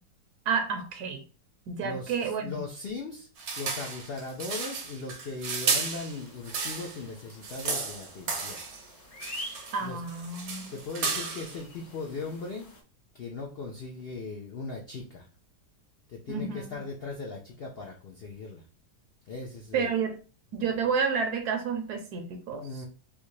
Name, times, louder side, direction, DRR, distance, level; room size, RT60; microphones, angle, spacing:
voice 1, 0.5-1.2 1.7-2.6 9.7-10.8 16.3-16.8 19.7-20.2 20.5-22.6, right 6 dB, 75° right, 1.1 m, -30 dB
voice 2, 1.8-3.3 3.6-8.6 9.8-10.0 10.3-10.4 10.7-12.7 13.1-15.3 16.1-18.7 19.2-19.9 20.5-20.8 22.6-22.9, left 3 dB, 80° left, 0.5 m, -38 dB
sound 1, 3.4-7.0 7.3-8.8 9.2-9.8 10.1-11.6, right 4 dB, 55° right, 0.8 m, -33 dB
sound 2, 5.4-12.8, left 1 dB, 50° left, 1.2 m, -48 dB
3.6 x 2.7 x 3.1 m
omnidirectional pair, 1.8 m